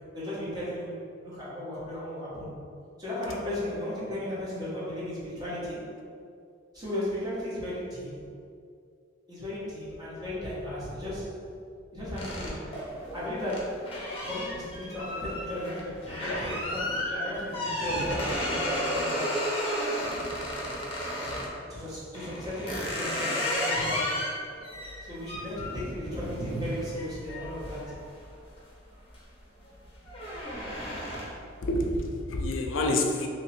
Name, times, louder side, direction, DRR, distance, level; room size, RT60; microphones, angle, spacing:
voice 1, 0.1-2.5 3.0-5.9 6.7-8.1 9.3-11.3 11.9-12.7 13.1-13.9 14.2-19.5 21.7-24.3 25.0-28.0, left 1 dB, 20° right, -10 dB, 1.2 m, -35 dB
sound 1, 12.2-21.5 22.1-28.6 29.0-29.4 29.7-31.5, left 1 dB, 30° left, 0.8 m, -33 dB
voice 2, 31.6-33.3, left 1 dB, 85° left, 2 dB, 0.5 m, -28 dB
3.0 x 2.8 x 4.3 m, 2.4 s
head